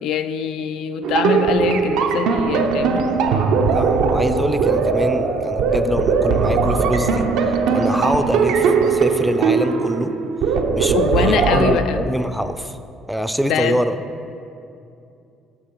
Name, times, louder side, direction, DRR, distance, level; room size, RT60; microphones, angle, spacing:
voice 1, 0.0-3.1 10.9-12.1 13.4-13.8, left 7 dB, 75° left, 9 dB, 0.4 m, -23 dB
sound 1, 1.0-11.7, right 5 dB, 80° right, 0.6 m, -19 dB
voice 2, 3.7-7.3 7.7-10.1 10.8-12.8 13.1-14.0, equal, ahead, 10 dB, 0.4 m, -24 dB
8.6 x 5.7 x 4.5 m, 2.6 s
cardioid pair, 95°, 0 cm